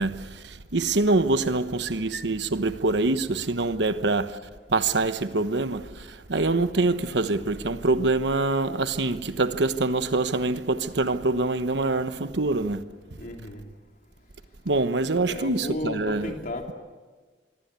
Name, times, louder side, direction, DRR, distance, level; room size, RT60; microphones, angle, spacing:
voice 1, 0.0-4.4 4.7-12.8 14.6-16.3, right 2 dB, 70° right, 1.1 m, -25 dB
voice 2, 13.2-13.6 15.1-16.7, left 1 dB, 50° left, 3.3 m, -34 dB
25.0 x 23.5 x 8.3 m
head